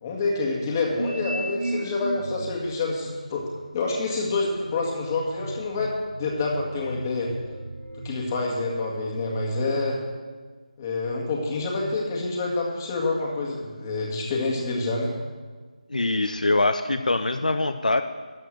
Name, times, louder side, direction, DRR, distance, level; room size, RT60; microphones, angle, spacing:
voice 1, 0.0-3.4 3.7-5.9 6.2-7.3 8.0-10.0 10.8-15.1, left 3 dB, 25° left, -1 dB, 1.9 m, -27 dB
sound 1, 1.0-2.6 3.4-8.3, right 2 dB, 85° right, 0.8 m, -35 dB
voice 2, 15.9-18.0, left 2 dB, 80° left, 9 dB, 0.6 m, -23 dB
13.0 x 5.9 x 6.4 m, 1.4 s
figure-of-eight pair, 160°, 4 cm